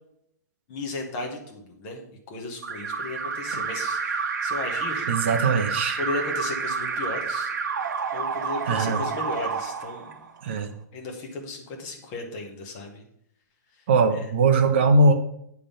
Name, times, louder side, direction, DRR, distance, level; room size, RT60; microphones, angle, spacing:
voice 1, 0.7-5.1 6.0-7.5 8.1-10.3 10.9-13.0 14.1-14.2, left 2 dB, 20° left, 1 dB, 1.0 m, -35 dB
Alarm, 2.6-10.5, right 5 dB, 65° right, 1.0 m, -29 dB
voice 2, 5.1-6.0 8.7-9.0 10.4-10.7 13.9-15.1, right 3 dB, 35° right, 4 dB, 0.7 m, -20 dB
8.8 x 3.6 x 5.5 m, 0.75 s
hypercardioid pair, 175°, 10 cm